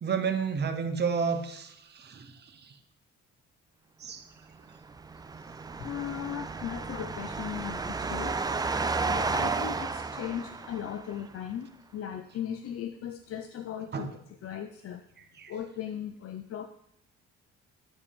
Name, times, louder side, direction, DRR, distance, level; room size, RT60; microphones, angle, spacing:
voice 1, 0.0-2.3 2.6-2.7 4.0-4.2 13.9-14.1 15.4-15.5, right 6 dB, 35° right, 6 dB, 0.8 m, -31 dB
sound 1, 4.8-11.1, right 4 dB, 15° right, 0.3 m, -32 dB
voice 2, 5.8-15.0 15.5-16.7, left 9 dB, 50° left, 8 dB, 0.5 m, -38 dB
8.7 x 4.7 x 3.5 m, 0.77 s
cardioid pair, 90°, 30 cm